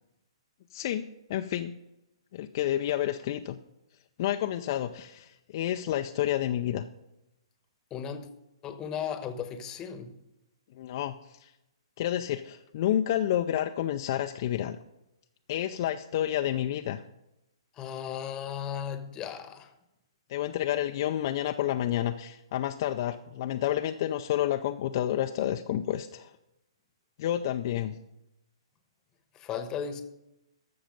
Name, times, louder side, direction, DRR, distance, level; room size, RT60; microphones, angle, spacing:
voice 1, 0.7-1.7 2.3-3.6 4.2-6.9 10.8-11.1 11.4-11.5 12.0-14.8 15.5-17.0 20.3-26.3 27.2-28.0, left 12 dB, 45° left, 0.5 m, -29 dB
voice 2, 7.9-8.3 8.6-10.1 17.8-19.7 29.3-30.0, left 8 dB, 25° left, 1.1 m, -36 dB
13.0 x 6.9 x 5.3 m
hypercardioid pair, 130°, 3 cm